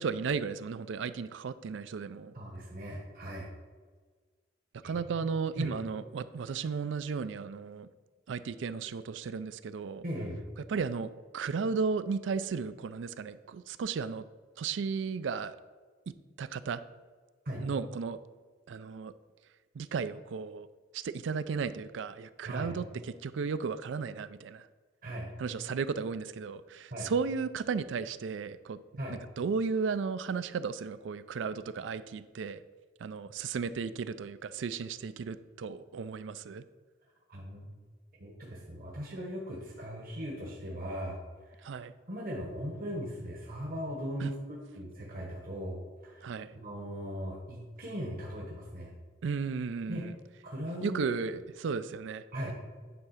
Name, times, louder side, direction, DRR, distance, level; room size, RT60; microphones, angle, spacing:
voice 1, 0.0-2.3 4.8-7.9 8.3-10.0 10.7-14.2 14.6-15.6 16.1-16.8 17.6-18.2 18.7-19.1 19.7-20.7 20.9-22.9 23.2-24.7 25.4-28.8 29.1-32.6 33.0-36.6 41.6-41.9 44.2-44.3 46.2-46.5 49.2-50.1 50.8-52.5, right 5 dB, 75° right, 14 dB, 0.4 m, -34 dB
voice 2, 2.3-3.5 4.8-5.1 5.6-5.8 10.0-10.4 17.4-17.7 22.4-22.7 25.0-25.3 26.9-27.1 29.0-29.2 37.3-37.8 38.2-41.7 42.1-48.9 49.9-50.2 50.4-51.4 52.3-52.5, equal, 50° right, -2 dB, 1.2 m, -39 dB
9.6 x 3.6 x 5.7 m, 1.5 s
head